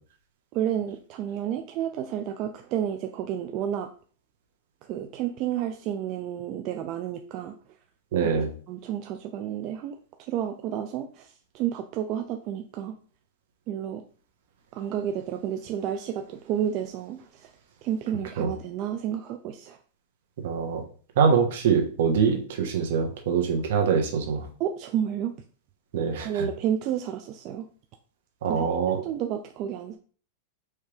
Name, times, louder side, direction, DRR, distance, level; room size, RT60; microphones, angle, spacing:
voice 1, 0.5-3.9 4.8-7.5 8.2-8.3 8.7-10.0 10.3-12.9 13.7-14.0 14.7-17.5 17.8-19.8 24.6-25.3 26.2-27.7 28.4-28.7 29.0-30.0, right 10 dB, 40° right, 6 dB, 0.4 m, -31 dB
voice 2, 8.1-8.5 18.4-18.5 20.4-20.8 21.2-24.5 25.9-26.5 28.4-29.0, right 6 dB, 70° right, 3 dB, 1.3 m, -24 dB
4.6 x 3.3 x 3.3 m, 0.41 s
supercardioid pair, 140°, 0 cm